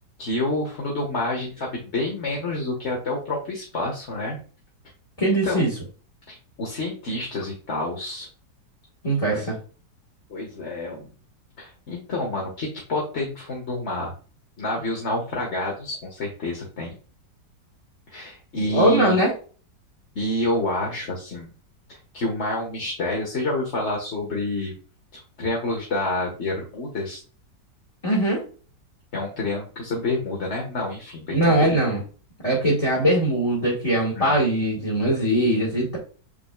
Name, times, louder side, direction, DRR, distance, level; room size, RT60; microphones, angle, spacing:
voice 1, 0.2-4.4 5.2-5.8 6.3-8.3 9.3-9.4 10.3-11.1 11.6-14.1 14.6-16.9 18.1-19.2 20.1-21.5 21.9-24.7 25.1-27.2 29.1-31.7 34.1-34.4, left 1 dB, 40° left, -1 dB, 1.7 m, -28 dB
voice 2, 5.2-5.7 9.0-9.6 18.6-19.3 28.0-28.4 31.3-32.0 32.4-36.0, right 1 dB, 20° left, -4 dB, 1.8 m, -21 dB
7.0 x 5.9 x 2.3 m, 0.38 s
omnidirectional pair, 1.9 m